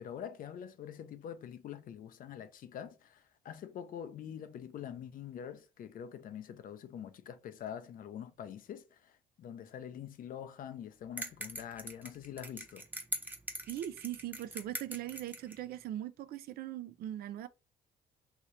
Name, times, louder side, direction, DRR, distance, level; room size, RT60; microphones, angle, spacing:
voice 1, 0.0-12.8, left 9 dB, 55° left, 0.5 m, -45 dB
sound 1, 11.2-15.6, right 1 dB, 10° right, 0.7 m, -42 dB
voice 2, 13.7-17.5, right 12 dB, 65° right, 0.4 m, -40 dB
2.8 x 2.7 x 3.1 m
cardioid pair, 90°, 17 cm